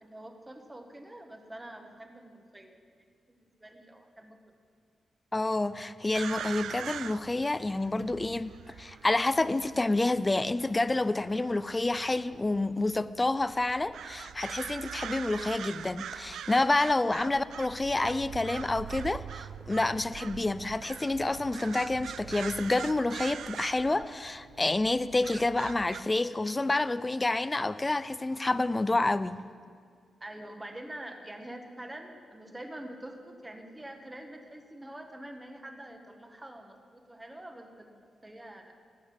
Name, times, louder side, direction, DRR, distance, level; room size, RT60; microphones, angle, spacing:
voice 1, 0.0-2.8 3.3-4.5 30.2-38.8, right 1 dB, 10° right, 4 dB, 1.3 m, -46 dB
voice 2, 5.3-29.4, left 2 dB, 15° left, 15 dB, 0.4 m, -28 dB
sound 1, 6.1-26.0, right 9 dB, 85° right, 0.4 m, -43 dB
17.0 x 6.6 x 8.6 m, 2.1 s
wide cardioid pair, 150°, 0 cm